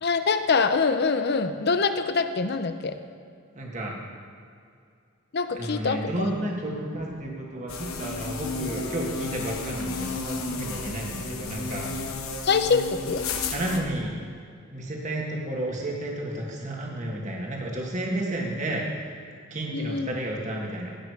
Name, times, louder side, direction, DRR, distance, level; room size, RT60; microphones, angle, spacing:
voice 1, 0.0-3.0 5.3-6.5 12.4-13.2 19.7-20.2, left 4 dB, 50° left, 9 dB, 0.6 m, -25 dB
voice 2, 3.5-3.9 5.6-11.9 13.5-14.2 14.7-18.8 19.5-21.0, right 1 dB, 35° right, -1 dB, 1.6 m, -31 dB
sound 1, 7.7-13.8, left 3 dB, 80° left, 1.1 m, -33 dB
16.0 x 6.2 x 4.8 m, 2.3 s
head